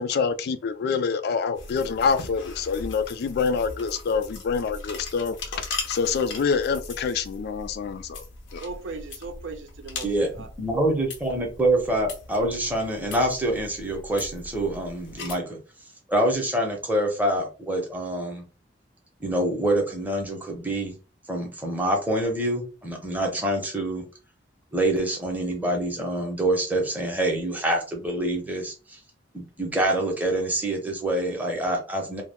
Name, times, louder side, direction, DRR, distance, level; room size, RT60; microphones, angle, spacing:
voice 1, 0.0-5.4 5.9-8.2 8.5-8.6, left 5 dB, 55° left, 0.3 m, -26 dB
sound 1, 1.5-15.4, left 3 dB, 85° left, 0.7 m, -39 dB
voice 2, 8.6-10.5, right 3 dB, 80° right, 0.6 m, -38 dB
voice 3, 10.0-15.6 16.1-18.4 19.2-20.9 21.3-24.0 24.7-29.0 29.3-32.2, right 1 dB, 10° right, 0.7 m, -26 dB
2.2 x 2.0 x 3.4 m
head